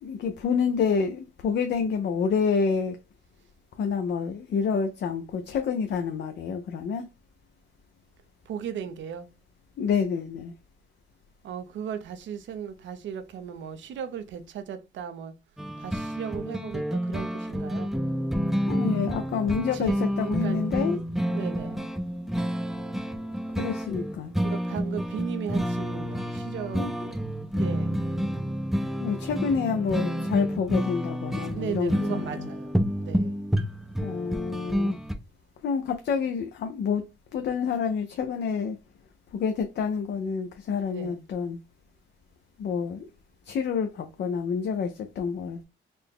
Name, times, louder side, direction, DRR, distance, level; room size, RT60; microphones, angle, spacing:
voice 1, 0.0-3.0 3.8-7.1 9.8-10.5 18.7-21.0 23.6-24.3 26.7-26.9 29.0-32.5 34.0-35.0 35.6-37.1 37.3-38.8 39.3-41.6 42.6-43.1 43.4-45.6, left 6 dB, 60° left, 0.6 m, -28 dB
voice 2, 8.5-9.3 11.4-15.3 15.8-17.9 19.7-21.0 21.3-21.9 24.4-27.3 27.5-28.0 31.5-33.4 40.9-41.2, right 8 dB, 70° right, 0.6 m, -37 dB
sound 1, 15.6-35.1, equal, ahead, 0.5 m, -29 dB
4.1 x 2.2 x 3.5 m
cardioid pair, 90°, 20 cm